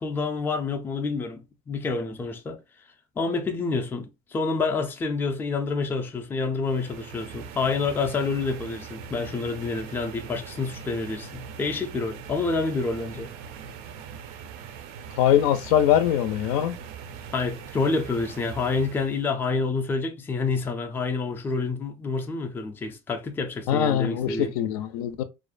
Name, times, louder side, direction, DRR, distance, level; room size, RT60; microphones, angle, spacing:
voice 1, 0.0-2.6 3.2-13.3 17.3-24.5, left 4 dB, 10° left, 0.3 m, -28 dB
sound 1, 6.6-19.3, right 7 dB, 60° right, 0.4 m, -41 dB
voice 2, 15.2-16.7 23.7-25.2, left 10 dB, 80° left, 0.5 m, -22 dB
2.4 x 2.1 x 2.4 m
cardioid pair, 140°, 19 cm